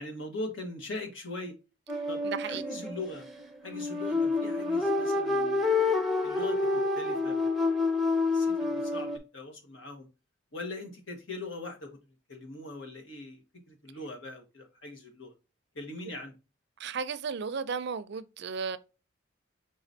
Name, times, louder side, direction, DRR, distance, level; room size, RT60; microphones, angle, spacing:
voice 1, 0.0-1.5 2.1-3.3 3.6-5.6 6.2-6.6 6.9-7.4 8.3-10.1 10.5-12.0 12.3-13.4 13.7-15.3 15.7-16.3, left 2 dB, 70° left, 1.5 m, -41 dB
sound 1, 1.9-9.2, left 3 dB, ahead, 0.7 m, -28 dB
voice 2, 2.2-2.6 16.8-18.8, right 5 dB, 55° right, 0.5 m, -34 dB
5.0 x 3.9 x 2.6 m
head